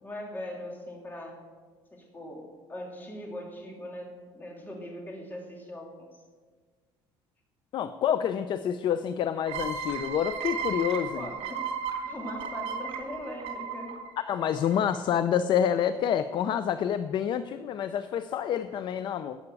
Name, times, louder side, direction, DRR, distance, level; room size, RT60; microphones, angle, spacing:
voice 1, 0.0-1.4 1.9-6.1 11.1-11.6 12.0-13.9, left 1 dB, 20° left, 0 dB, 2.9 m, -40 dB
voice 2, 7.7-11.2 14.2-19.4, left 9 dB, 50° left, 12 dB, 0.5 m, -28 dB
sound 1, 9.5-15.0, right 6 dB, 75° right, 3.1 m, -35 dB
12.0 x 8.0 x 8.2 m, 1.5 s
cardioid pair, 145°, 10 cm